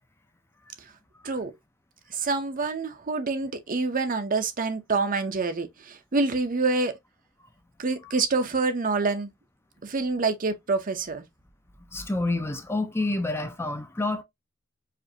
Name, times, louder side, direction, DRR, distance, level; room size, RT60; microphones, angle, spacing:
voice 1, 2.1-6.9 7.8-9.3 9.8-11.2, right 3 dB, 40° right, 0.6 m, -27 dB
voice 2, 11.9-14.2, left 2 dB, 10° left, 0.5 m, -28 dB
4.9 x 2.7 x 2.6 m
head